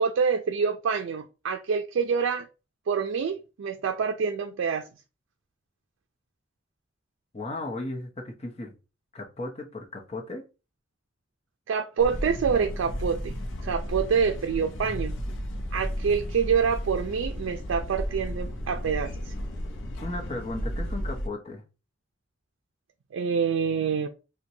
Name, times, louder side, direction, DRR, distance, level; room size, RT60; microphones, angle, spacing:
voice 1, 0.0-2.4 2.9-4.8 11.7-13.4 13.6-15.1 15.7-19.3 23.1-24.1, right 6 dB, 85° right, 0.4 m, -26 dB
voice 2, 7.3-8.7 9.1-10.4 20.0-21.6, left 2 dB, 35° left, 0.8 m, -35 dB
sound 1, 12.0-21.3, equal, 70° left, 0.6 m, -33 dB
4.4 x 2.2 x 2.6 m
head